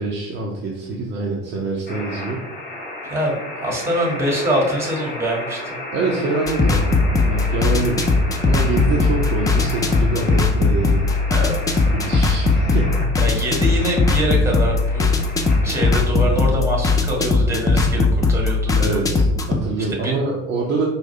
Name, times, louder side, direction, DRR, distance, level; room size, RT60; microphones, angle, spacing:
voice 1, 0.0-2.4 5.9-7.0 7.3-8.0 8.4-11.0 12.0-13.1 18.8-20.9, right 3 dB, 30° right, -2 dB, 0.8 m, -25 dB
sound 1, 1.9-16.0, left 1 dB, 25° left, 1.3 m, -33 dB
voice 2, 3.1-5.8 11.3-11.8 13.2-15.2 15.6-18.8 20.0-20.2, equal, 5° right, -1 dB, 1.5 m, -24 dB
sound 2, 6.5-19.6, left 3 dB, 10° left, 0.3 m, -19 dB
4.7 x 2.6 x 4.4 m, 0.95 s
figure-of-eight pair, 70°, 35 cm